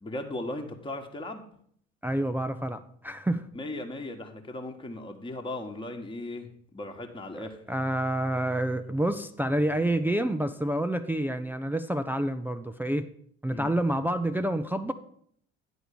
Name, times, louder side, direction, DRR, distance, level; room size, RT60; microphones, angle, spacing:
voice 1, 0.0-1.4 3.5-6.5 6.7-7.6 13.5-13.7, left 2 dB, 15° left, 3 dB, 1.3 m, -37 dB
voice 2, 2.0-3.4 7.4-13.1 13.4-14.9, right 1 dB, 5° right, 7 dB, 0.4 m, -28 dB
10.0 x 4.5 x 6.8 m, 0.63 s
figure-of-eight pair, 60°, 35 cm